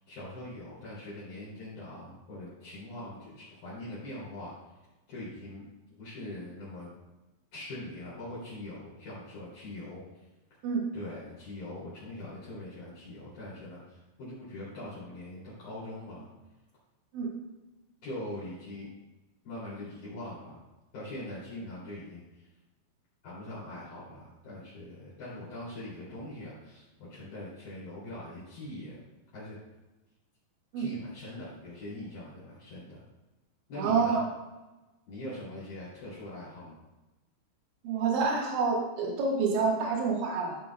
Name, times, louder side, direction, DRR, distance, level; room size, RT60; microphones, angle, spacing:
voice 1, 0.1-4.5 5.1-6.9 7.5-10.0 10.9-16.3 18.0-18.9 19.4-20.6 20.9-22.5 23.2-29.0 29.3-29.6 30.8-33.0 33.7-34.2 35.1-36.8, left 1 dB, 50° left, -10 dB, 4.2 m, -42 dB
voice 2, 33.8-34.2 37.8-40.6, right 4 dB, 80° right, -2 dB, 4.0 m, -28 dB
14.0 x 7.3 x 2.3 m, 1.1 s
omnidirectional pair, 5.5 m